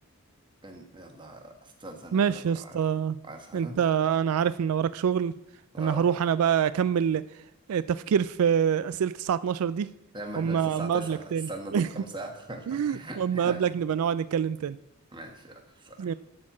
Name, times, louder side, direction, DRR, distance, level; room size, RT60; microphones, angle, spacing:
voice 1, 0.6-2.8 3.2-3.8 5.7-6.1 10.1-13.6 15.1-16.1, right 1 dB, 20° right, 4 dB, 1.3 m, -41 dB
voice 2, 2.1-3.2 3.5-5.3 5.8-7.2 7.7-9.9 10.4-11.9 12.7-14.8 16.0-16.1, right 8 dB, 80° right, 16 dB, 0.3 m, -26 dB
12.0 x 4.5 x 7.1 m, 0.86 s
head